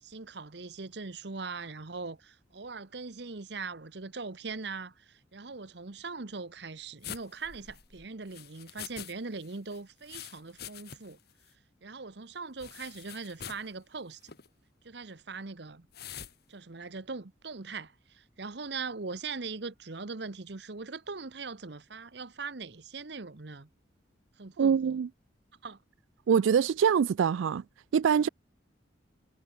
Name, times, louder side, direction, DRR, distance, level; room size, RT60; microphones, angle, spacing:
voice 1, 0.0-11.2 11.8-14.2 14.8-15.9 16.5-23.7 24.4-25.0 25.6-25.8, right 4 dB, 60° right, 1.0 m, -41 dB
sound 1, 7.0-9.1 9.4-11.2 11.5-11.6 12.6-13.7 14.2-14.5 15.9-16.3, left 9 dB, 55° left, 1.9 m, -45 dB
voice 2, 24.6-25.1 26.3-27.6 27.9-28.3, right 7 dB, 90° right, 0.3 m, -24 dB
head